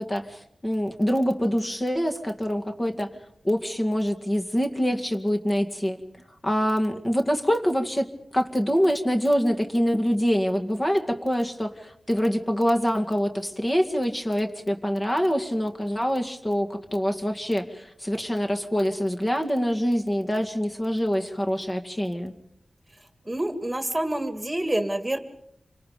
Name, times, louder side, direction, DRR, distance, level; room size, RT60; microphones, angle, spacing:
voice 1, 0.0-3.1 3.4-6.0 6.4-22.3, equal, 25° left, 4 dB, 2.1 m, -25 dB
voice 2, 23.2-25.2, right 1 dB, 15° right, 8 dB, 2.1 m, -27 dB
28.0 x 25.0 x 5.2 m, 0.72 s
wide cardioid pair, 85°, 0 cm